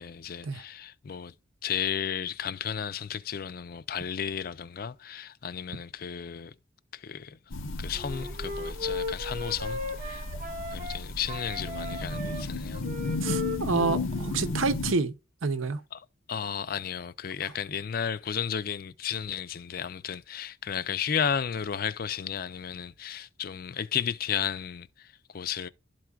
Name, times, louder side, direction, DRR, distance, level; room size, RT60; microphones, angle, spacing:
voice 1, 0.0-1.3 1.6-6.5 6.9-7.4 7.8-10.2 10.7-12.9 15.9-25.7, left 8 dB, 45° left, 0.4 m, -33 dB
sound 1, 7.5-14.9, left 2 dB, 90° left, 0.9 m, -34 dB
Wind instrument woodwind instrument, 7.9-11.0 11.3-14.6, left 2 dB, 40° right, 0.8 m, -37 dB
voice 2, 13.2-15.1 15.4-15.8, right 4 dB, 85° right, 0.8 m, -28 dB
12.0 x 4.5 x 2.3 m
head